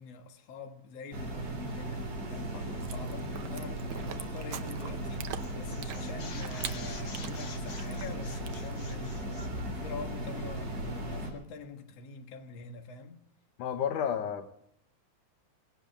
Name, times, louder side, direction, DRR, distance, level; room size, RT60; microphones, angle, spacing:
voice 1, 0.0-13.2, left 4 dB, 60° left, 2.4 m, -45 dB
sound 1, 1.1-11.3, right 1 dB, 35° right, 4.0 m, -37 dB
voice 2, 2.5-2.8 13.6-14.5, left 8 dB, 85° left, 2.6 m, -32 dB
Chewing mastication, 2.8-8.9, right 9 dB, 75° right, 1.2 m, -44 dB
sound 2, 4.8-5.1 5.3-9.6, left 5 dB, 40° left, 2.0 m, -48 dB
19.5 x 17.5 x 3.4 m
omnidirectional pair, 3.5 m